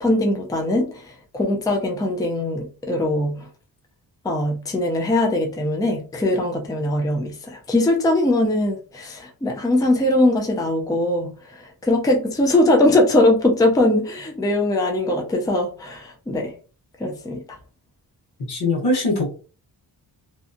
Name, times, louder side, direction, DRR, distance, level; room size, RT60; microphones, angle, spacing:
voice 1, 0.0-3.5 4.2-16.5 17.0-17.4, left 1 dB, 10° left, 0.4 m, -21 dB
voice 2, 18.5-19.3, left 2 dB, 80° left, 1.2 m, -21 dB
2.7 x 2.2 x 2.6 m
wide cardioid pair, 150°, 39 cm